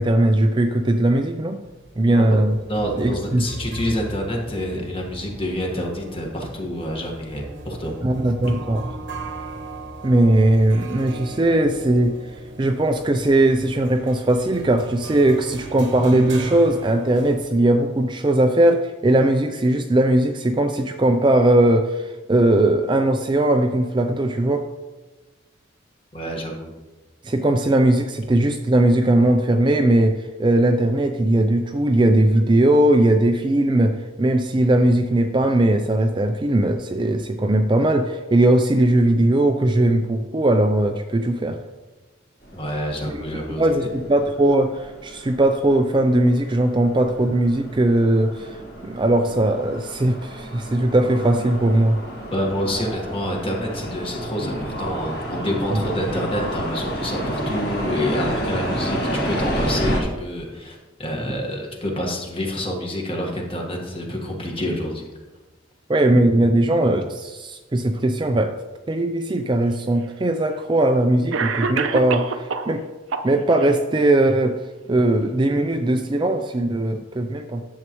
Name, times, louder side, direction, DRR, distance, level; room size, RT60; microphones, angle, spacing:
voice 1, 0.0-1.6 2.0-2.6 3.0-3.5 8.0-8.9 10.0-12.1 12.6-24.6 27.2-41.6 43.1-43.2 43.6-48.6 48.8-52.0 55.7-55.8 65.9-68.5 68.9-72.8 73.2-74.6 74.9-77.6, right 1 dB, 25° right, 5 dB, 0.4 m, -19 dB
sound 1, 1.6-17.4, right 2 dB, 60° right, 1.0 m, -37 dB
voice 2, 2.7-7.9 26.1-26.7 42.5-43.9 52.3-65.1, equal, 25° left, 0 dB, 1.5 m, -28 dB
sound 2, 42.4-60.0, equal, 45° left, 2.8 m, -30 dB
Cough, 69.6-69.7 70.7-70.8 71.3-72.7 73.1-73.7, right 4 dB, 80° right, 0.6 m, -26 dB
11.0 x 7.4 x 3.0 m, 1.2 s
head